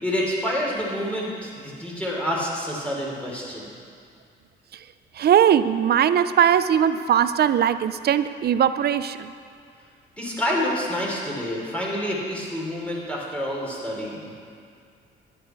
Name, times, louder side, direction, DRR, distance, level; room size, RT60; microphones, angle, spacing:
voice 1, 0.0-3.7 10.2-14.3, equal, 5° left, -5 dB, 3.8 m, -28 dB
voice 2, 5.2-9.3, right 9 dB, 55° right, 13 dB, 0.5 m, -20 dB
14.5 x 10.5 x 4.7 m, 2.3 s
cardioid pair, 90°, 20 cm